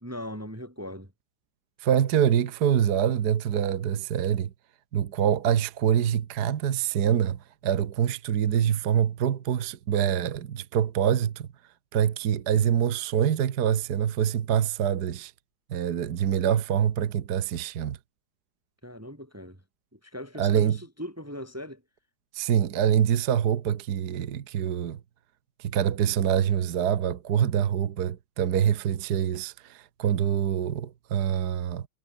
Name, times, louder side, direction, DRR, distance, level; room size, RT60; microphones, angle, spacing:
voice 1, 0.0-1.1 18.8-19.6 19.9-21.8, equal, 5° right, 3.0 m, -39 dB
voice 2, 1.8-4.5 4.9-11.5 11.9-15.3 15.7-18.0 20.4-20.8 22.3-25.0 25.6-31.9, right 9 dB, 55° right, 1.6 m, -25 dB
omnidirectional pair, 2.3 m